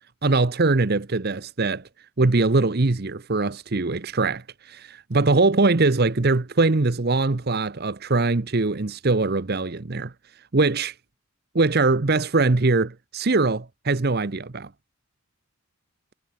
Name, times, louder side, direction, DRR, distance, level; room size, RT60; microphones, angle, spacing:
voice 1, 0.2-1.8 2.2-10.1 10.5-10.9 11.5-14.7, right 3 dB, 45° right, 0.8 m, -22 dB
head